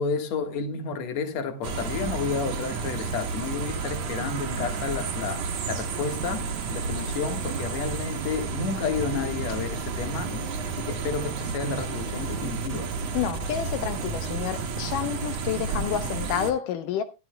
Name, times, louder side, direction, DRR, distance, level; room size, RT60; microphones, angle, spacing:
voice 1, 0.0-12.9, left 5 dB, 55° left, 2.4 m, -31 dB
sound 1, 1.6-16.5, right 5 dB, 55° right, 2.4 m, -31 dB
voice 2, 13.1-17.0, left 9 dB, 75° left, 2.3 m, -29 dB
15.5 x 12.5 x 2.2 m
omnidirectional pair, 4.2 m